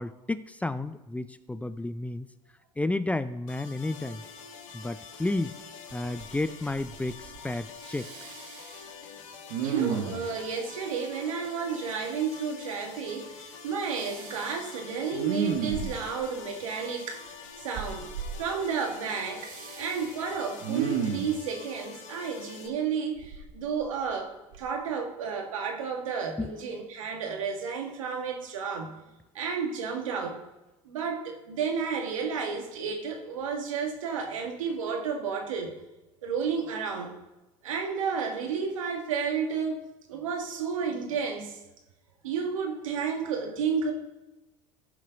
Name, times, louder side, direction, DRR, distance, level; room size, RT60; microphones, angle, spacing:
voice 1, 0.0-2.3 2.8-4.2 4.7-5.6 5.9-8.1 26.4-26.6, left 2 dB, 10° left, 13 dB, 0.5 m, -32 dB
sound 1, 3.5-22.7, left 6 dB, 85° left, 1.7 m, -46 dB
Respiratory sounds, 5.4-5.5 5.9-6.4 6.7-7.5 7.8-8.8 9.5-10.3 13.9-14.5 15.1-16.2 17.7-18.4 19.4-20.1 20.6-21.4 23.2-24.1 24.5-24.7, right 7 dB, 70° right, 1.5 m, -33 dB
voice 2, 9.6-17.2 17.6-18.1 18.4-19.5 19.8-29.0 29.3-30.4 30.9-35.7 36.2-37.2 37.6-39.8 40.1-41.6 42.2-43.9, right 6 dB, 90° right, 3 dB, 1.7 m, -32 dB
14.5 x 5.6 x 5.2 m, 1.1 s
hypercardioid pair, 90°, 16 cm